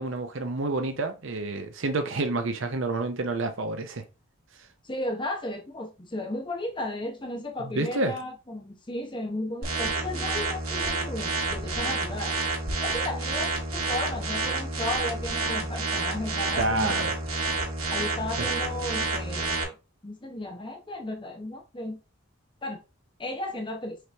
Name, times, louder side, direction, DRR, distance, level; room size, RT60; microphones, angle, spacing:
voice 1, 0.0-4.0 7.6-8.2 16.6-17.1 18.4-18.5, right 2 dB, 60° right, 0.7 m, -29 dB
voice 2, 4.8-12.4 12.8-16.9 17.4-17.5 17.9-19.7 20.0-22.0 22.6-22.8 23.2-24.0, left 1 dB, 20° left, 0.8 m, -34 dB
sound 1, 9.6-19.6, right 3 dB, 85° right, 1.6 m, -29 dB
4.9 x 3.0 x 3.3 m
head